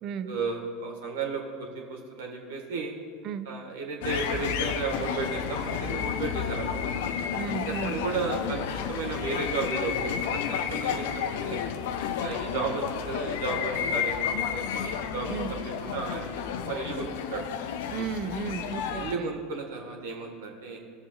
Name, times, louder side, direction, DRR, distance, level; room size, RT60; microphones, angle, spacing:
voice 1, 0.2-2.9 3.5-6.8 7.8-11.6 12.2-16.3 16.6-17.4 18.9-20.8, right 4 dB, 70° right, 1 dB, 1.5 m, -34 dB
sound 1, 4.0-19.1, left 8 dB, 65° left, 0.5 m, -31 dB
voice 2, 7.3-8.0 15.3-15.5 17.9-19.3, right 7 dB, 50° right, 11 dB, 0.5 m, -34 dB
16.5 x 7.0 x 2.3 m, 2.1 s
figure-of-eight pair, 75°, 0 cm